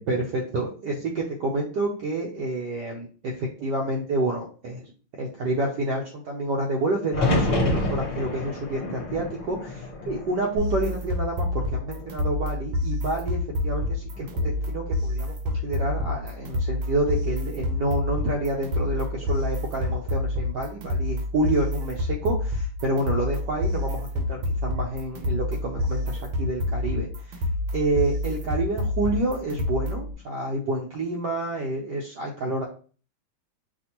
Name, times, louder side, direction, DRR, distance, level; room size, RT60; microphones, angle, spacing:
voice 1, 0.0-4.9 5.2-27.4 27.7-32.7, right 2 dB, 65° right, -1 dB, 1.1 m, -29 dB
sound 1, 7.1-11.2 11.5-12.3 14.2-14.6, left 1 dB, 40° left, 1.3 m, -28 dB
sound 2, 10.6-30.1, left 2 dB, 85° right, 1.7 m, -28 dB
5.9 x 2.5 x 2.8 m, 0.40 s
omnidirectional pair, 2.3 m